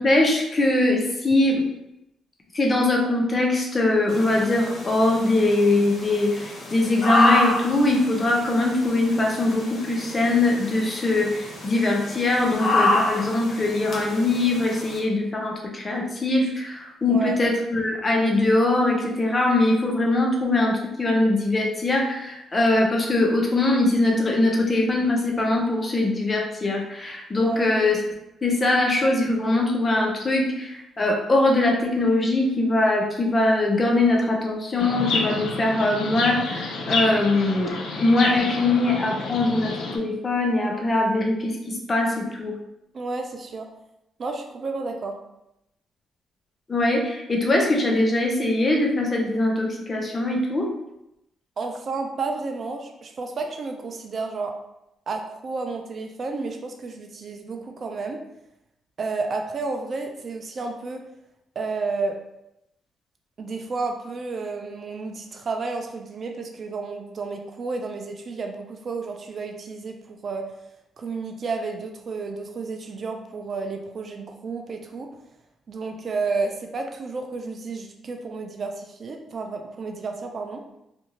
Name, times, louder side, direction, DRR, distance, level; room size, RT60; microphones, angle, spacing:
voice 1, 0.0-1.7 2.5-28.0 28.4-42.6 46.7-50.7, left 2 dB, 30° left, 0 dB, 0.7 m, -22 dB
sound 1, 4.1-15.0, left 2 dB, 55° left, 0.9 m, -28 dB
Chirp tweet, 34.8-40.0, left 3 dB, 75° left, 0.4 m, -29 dB
voice 2, 42.9-43.7 44.2-45.1 51.6-54.5 55.1-58.2 59.0-61.0 61.6-62.2 63.4-70.4 71.0-75.1 75.7-80.6, right 4 dB, 45° right, 4 dB, 0.4 m, -31 dB
2.5 x 2.4 x 2.9 m, 0.86 s
cardioid pair, 90°, 0 cm